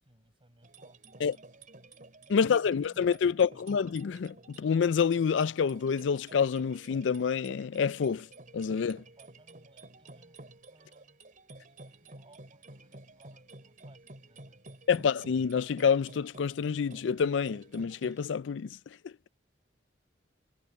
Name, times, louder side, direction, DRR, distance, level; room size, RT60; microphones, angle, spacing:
voice 1, 0.0-1.8 2.2-3.7 9.1-10.4 10.7-11.2 11.6-15.1, right 1 dB, 30° right, 6.9 m, -63 dB
sound 1, 0.6-18.2, right 2 dB, 45° right, 4.8 m, -52 dB
voice 2, 2.3-8.3 8.5-9.0 14.9-18.8 19.0-19.1, left 6 dB, 70° left, 0.4 m, -28 dB
head